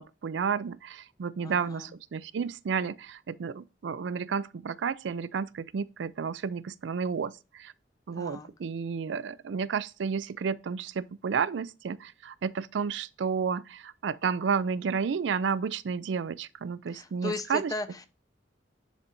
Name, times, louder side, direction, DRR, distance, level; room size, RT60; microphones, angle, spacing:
voice 1, 0.0-7.7 8.1-17.7, right 6 dB, 75° right, 0.4 m, -31 dB
voice 2, 1.4-1.9 8.2-8.5 16.9-18.1, left 2 dB, 20° left, 0.7 m, -37 dB
10.0 x 4.2 x 2.6 m
head